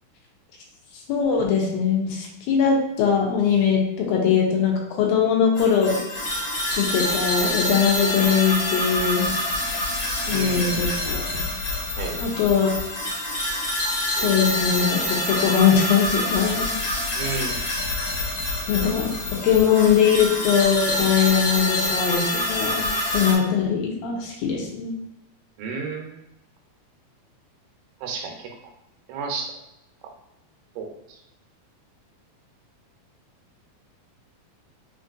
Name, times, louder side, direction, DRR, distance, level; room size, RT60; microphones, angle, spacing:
voice 1, 1.1-6.0 6.8-9.3 10.3-11.2 12.2-12.7 14.2-16.7 18.7-19.1 19.4-22.9 23.1-24.9, left 7 dB, 85° left, -1 dB, 2.4 m, -21 dB
sound 1, 5.6-23.3, left 1 dB, 60° left, 1.6 m, -26 dB
voice 2, 10.3-10.8 12.0-12.3 17.2-17.6 25.6-26.2 28.0-28.5 29.1-29.5 30.8-31.2, right 4 dB, 85° right, 2 dB, 2.4 m, -32 dB
5.8 x 2.6 x 2.4 m, 0.86 s
omnidirectional pair, 4.3 m